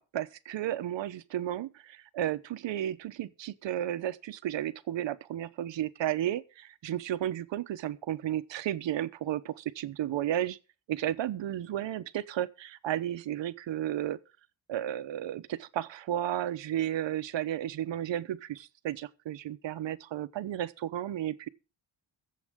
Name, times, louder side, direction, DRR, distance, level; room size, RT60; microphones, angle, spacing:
voice 1, 0.0-10.6 10.9-14.2 14.7-21.5, right 12 dB, 70° right, 1.0 m, -33 dB
23.0 x 7.8 x 3.7 m
cardioid pair, 140°, 46 cm